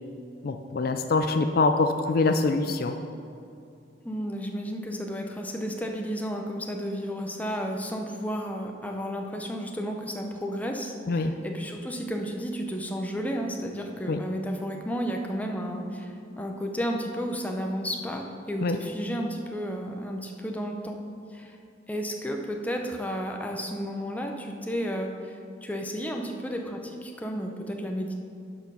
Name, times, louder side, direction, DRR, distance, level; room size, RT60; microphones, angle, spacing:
voice 1, 0.4-2.9 11.1-11.4 14.1-14.2 18.6-18.8, left 3 dB, 55° left, 6 dB, 0.4 m, -24 dB
voice 2, 4.0-21.0 21.3-21.6 21.9-28.1, equal, 10° left, 2 dB, 0.7 m, -32 dB
11.0 x 4.5 x 5.5 m, 2.6 s
head